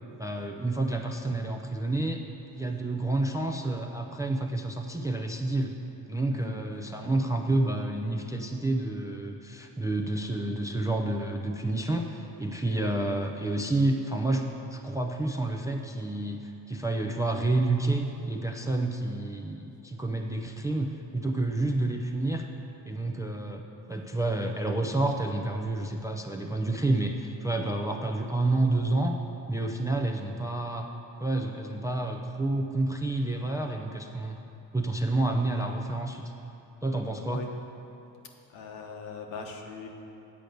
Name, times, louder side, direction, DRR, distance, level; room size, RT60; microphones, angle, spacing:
voice 1, 0.2-2.2 2.5-5.7 6.1-22.5 22.8-23.6 23.9-29.2 29.5-30.9 31.2-34.4 34.7-36.2 36.8-37.4, right 2 dB, 5° right, 3 dB, 0.4 m, -29 dB
voice 2, 6.3-6.9 37.2-37.5 38.2-39.9, left 4 dB, 65° left, 2 dB, 1.3 m, -41 dB
8.5 x 5.1 x 7.7 m, 2.9 s
supercardioid pair, 85°, 48 cm